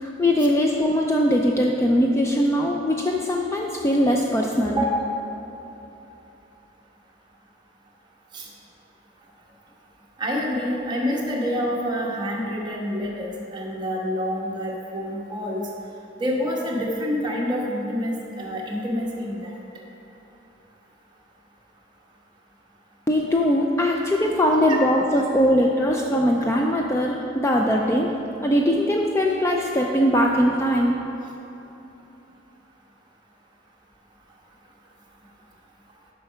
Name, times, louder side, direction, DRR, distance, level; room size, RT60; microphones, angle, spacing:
voice 1, 0.0-4.8 23.1-28.1 28.4-31.0, equal, 15° left, 0 dB, 0.4 m, -21 dB
voice 2, 4.7-5.1 8.3-8.5 10.2-15.6 16.2-19.5 24.7-24.8, equal, 25° right, -3 dB, 1.2 m, -27 dB
7.9 x 5.6 x 5.6 m, 3.0 s
head